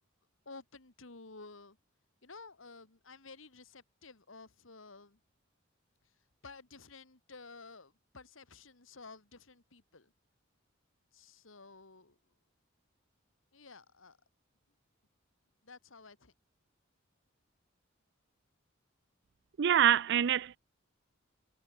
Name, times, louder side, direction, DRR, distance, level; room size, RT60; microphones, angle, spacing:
voice 1, 0.5-1.8 2.2-5.2 6.4-10.1 11.1-12.2 13.5-14.2 15.6-16.3, left 3 dB, 75° left, 2.2 m, -53 dB
voice 2, 19.6-20.6, right 9 dB, 60° right, 0.4 m, -25 dB
head